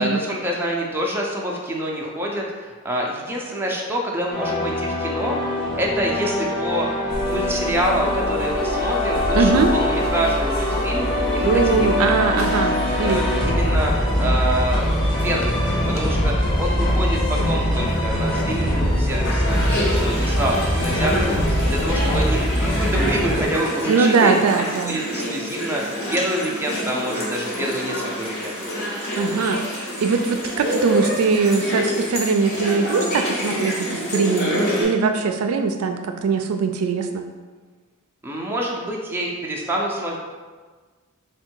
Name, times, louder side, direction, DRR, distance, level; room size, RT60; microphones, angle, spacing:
voice 1, 0.0-11.9 12.6-19.6 19.8-28.6 38.2-40.2, right 1 dB, 10° right, -2 dB, 0.4 m, -27 dB
sound 1, 4.3-23.5, left 1 dB, 20° left, 0.9 m, -23 dB
sound 2, 7.1-22.3, left 1 dB, 65° left, 0.5 m, -30 dB
voice 2, 9.3-9.7 11.4-13.3 23.9-25.0 29.2-37.3, right 4 dB, 85° right, 5 dB, 0.4 m, -21 dB
sound 3, 19.5-34.8, equal, 45° left, 1.0 m, -27 dB
3.5 x 2.2 x 4.4 m, 1.4 s
head